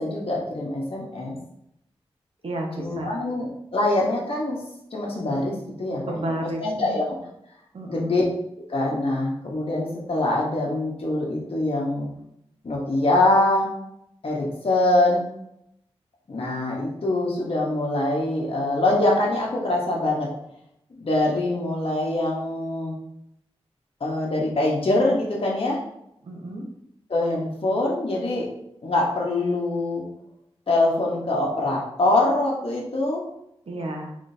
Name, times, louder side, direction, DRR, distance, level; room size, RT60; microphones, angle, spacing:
voice 1, 0.0-1.3 2.8-4.6 4.9-5.5 5.8-7.2 7.9-8.2 8.7-12.1 12.6-13.7 14.2-15.2 16.3-20.3 20.9-23.0 24.0-25.8 27.1-28.5 28.8-30.0 30.7-33.2, left 2 dB, 60° left, -3 dB, 1.0 m, -24 dB
voice 2, 2.4-3.1 6.1-6.9 7.7-8.2 26.2-26.6 33.7-34.1, right 1 dB, 65° right, 1 dB, 0.9 m, -31 dB
3.7 x 3.2 x 2.6 m, 0.77 s
cardioid pair, 45°, 11 cm